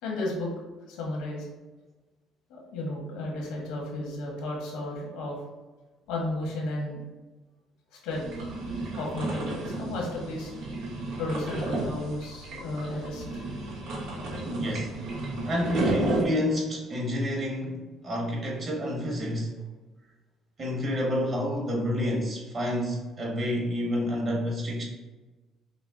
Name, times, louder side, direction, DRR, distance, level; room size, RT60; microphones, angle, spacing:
voice 1, 0.0-0.5 0.9-1.4 2.5-5.3 6.1-7.0 7.9-8.3 8.9-10.5 11.2-13.4, left 1 dB, 90° left, -2 dB, 1.3 m, -33 dB
sound 1, 8.1-16.2, right 2 dB, 80° right, 1.0 m, -33 dB
voice 2, 14.4-14.9 15.5-19.5 20.6-24.8, equal, 40° right, -2 dB, 1.5 m, -29 dB
5.5 x 2.0 x 3.6 m, 1.2 s
cardioid pair, 95°, 0 cm